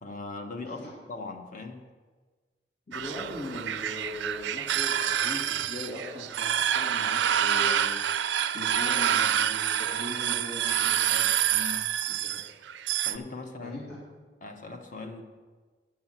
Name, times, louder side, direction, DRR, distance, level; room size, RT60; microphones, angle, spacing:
voice 1, 0.0-1.9 11.5-11.9 13.0-13.8 14.4-15.2, left 3 dB, 45° left, 4 dB, 1.1 m, -39 dB
voice 2, 2.9-11.3 12.1-12.4 13.6-14.0, left 1 dB, 80° left, -7 dB, 2.7 m, -40 dB
sound 1, 2.9-13.2, right 10 dB, 85° right, 0.4 m, -27 dB
8.8 x 6.2 x 7.3 m, 1.4 s
head